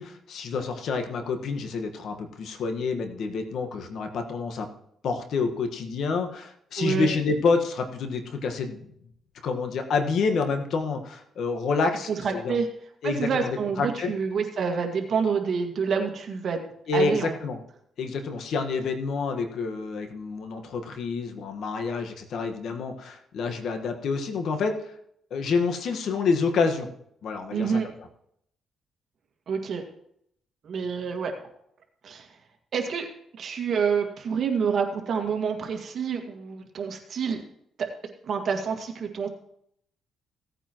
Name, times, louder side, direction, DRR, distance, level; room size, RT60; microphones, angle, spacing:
voice 1, 0.0-4.7 5.0-8.8 9.4-12.6 13.0-14.1 16.9-17.6 18.0-24.9 25.3-26.9 27.2-27.8, left 4 dB, 70° left, 5 dB, 1.5 m, -28 dB
voice 2, 6.8-7.1 12.1-12.7 13.0-16.6 16.9-17.3 27.5-27.9 29.5-29.8 30.6-31.3 32.0-32.4 32.7-33.1 33.4-37.4 38.2-39.3, right 6 dB, 55° right, 3 dB, 2.0 m, -27 dB
17.0 x 9.0 x 3.1 m, 0.71 s
cardioid pair, 90°, 0 cm